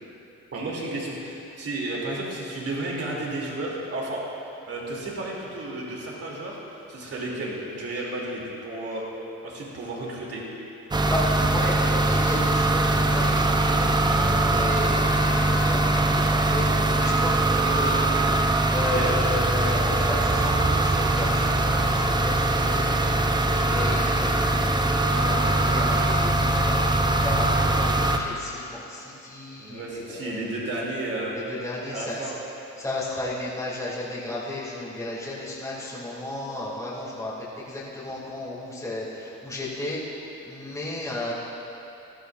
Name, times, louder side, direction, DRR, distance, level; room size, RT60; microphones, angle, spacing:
voice 1, 0.5-4.2 4.7-6.6 6.9-9.1 9.4-10.4 18.9-19.1 29.6-31.4 31.9-32.3, right 2 dB, 50° right, -3 dB, 3.0 m, -32 dB
sound 1, 10.9-28.2, right 2 dB, 15° right, 0.7 m, -22 dB
voice 2, 11.1-18.2 18.7-26.9 27.2-30.5 31.3-32.4 32.8-41.3, left 1 dB, 10° left, -8 dB, 2.8 m, -34 dB
16.5 x 12.5 x 2.6 m, 2.9 s
cardioid pair, 90°, 30 cm